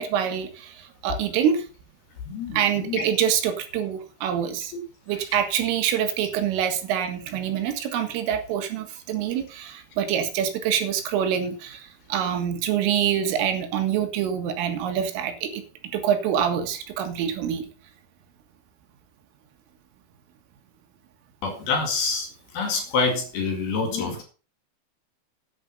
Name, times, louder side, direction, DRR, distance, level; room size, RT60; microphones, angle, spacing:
voice 1, 0.0-1.6 2.5-4.7 5.1-15.6 15.9-17.7, right 9 dB, 75° right, 6 dB, 4.2 m, -25 dB
voice 2, 2.3-3.1 21.4-22.3 22.5-24.2, left 4 dB, 55° left, 4 dB, 3.6 m, -26 dB
10.0 x 8.7 x 5.4 m, 0.35 s
omnidirectional pair, 5.9 m